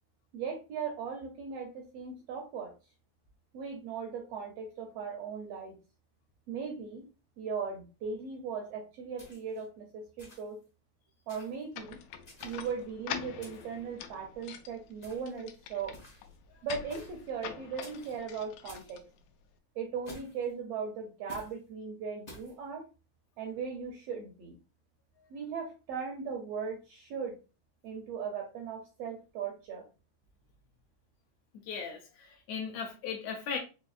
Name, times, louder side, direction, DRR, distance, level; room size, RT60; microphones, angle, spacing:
voice 1, 0.3-2.7 3.5-5.8 6.5-7.1 7.4-10.6 11.3-12.0 12.4-15.9 16.6-19.0 19.7-22.8 23.4-24.6 25.3-27.4 27.8-29.9, right 6 dB, 75° right, 2 dB, 1.5 m, -38 dB
sound 1, 9.2-9.6 10.2-10.6 11.3-11.6 12.2-12.8 13.4-13.8 15.0-15.4 15.9-16.4 16.9-17.3 17.8-18.2 18.7-19.0 20.0-20.5 21.3-21.6 22.3-22.5, left 1 dB, 40° left, 0.7 m, -52 dB
sound 2, 11.7-19.6, left 8 dB, 90° left, 2.0 m, -45 dB
voice 2, 31.7-33.6, left 6 dB, 75° left, 2 dB, 1.8 m, -37 dB
5.3 x 2.6 x 2.4 m, 0.31 s
omnidirectional pair, 3.4 m